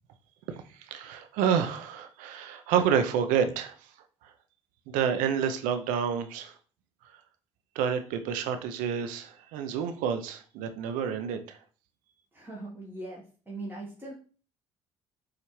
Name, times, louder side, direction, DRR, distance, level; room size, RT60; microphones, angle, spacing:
voice 1, 0.5-3.8 4.9-6.5 7.8-11.6, right 8 dB, 75° right, 8 dB, 0.5 m, -29 dB
voice 2, 12.3-14.1, right 2 dB, 15° right, -3 dB, 1.0 m, -40 dB
4.1 x 2.5 x 3.0 m, 0.39 s
hypercardioid pair, 60°, 14 cm